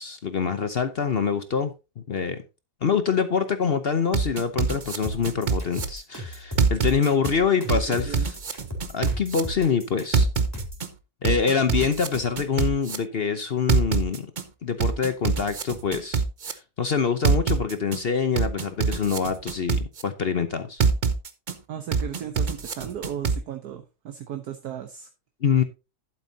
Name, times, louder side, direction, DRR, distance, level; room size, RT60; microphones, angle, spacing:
voice 1, 0.0-2.4 2.8-8.4 8.9-10.3 11.2-14.3 14.6-20.8 25.4-25.6, left 6 dB, 50° left, 0.8 m, -25 dB
sound 1, 4.1-5.8 6.6-7.3 7.7-9.4 10.1-10.9 11.2-13.0 13.7-14.4 14.8-16.5 17.2-18.0 18.4-20.0 20.8-21.5 21.9-23.4, right 5 dB, 40° right, 0.8 m, -24 dB
sound 2, 5.0-10.9, equal, 10° left, 3.9 m, -36 dB
voice 2, 21.7-25.1, right 9 dB, 65° right, 1.4 m, -35 dB
11.5 x 8.9 x 2.8 m
omnidirectional pair, 1.8 m